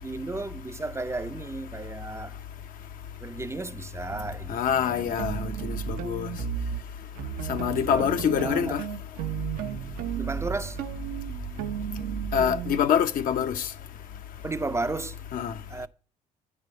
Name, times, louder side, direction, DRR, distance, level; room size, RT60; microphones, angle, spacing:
voice 1, 0.0-2.4 3.2-5.2 6.4-6.8 7.7-8.8 10.1-10.8 14.4-15.2 15.7-15.9, right 3 dB, 15° right, 0.5 m, -34 dB
sound 1, 4.1-4.4 5.0-6.8 7.2-12.8, right 8 dB, 70° right, 0.7 m, -33 dB
voice 2, 4.5-6.3 7.5-8.8 12.3-13.7 15.3-15.5, left 8 dB, 65° left, 0.7 m, -25 dB
9.6 x 5.2 x 5.4 m
hypercardioid pair, 55°, 16 cm